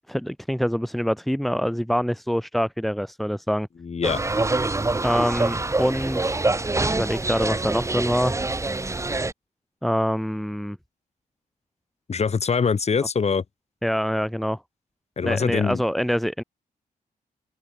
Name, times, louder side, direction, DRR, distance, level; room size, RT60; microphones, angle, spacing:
voice 1, 0.1-3.7 5.0-6.4 6.8-8.3 9.8-10.8 13.8-14.6 15.2-16.4, equal, ahead, 0.6 m, -25 dB
voice 2, 3.8-4.2 12.1-13.4 15.2-15.8, left 5 dB, 45° left, 4.6 m, -23 dB
sound 1, 4.0-9.3, right 2 dB, 20° right, 2.4 m, -25 dB
open air
cardioid pair, 100°, 15 cm